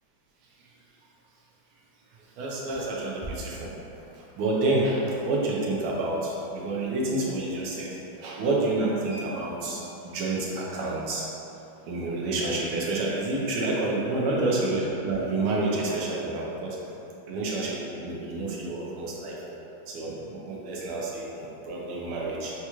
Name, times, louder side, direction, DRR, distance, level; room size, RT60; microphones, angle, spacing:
voice 1, 2.4-3.7 4.1-7.9 8.2-11.3 11.9-16.8 17.3-19.3 19.9-22.5, right 2 dB, 85° right, -4 dB, 1.6 m, -29 dB
6.7 x 2.3 x 3.0 m, 3.0 s
omnidirectional pair, 2.3 m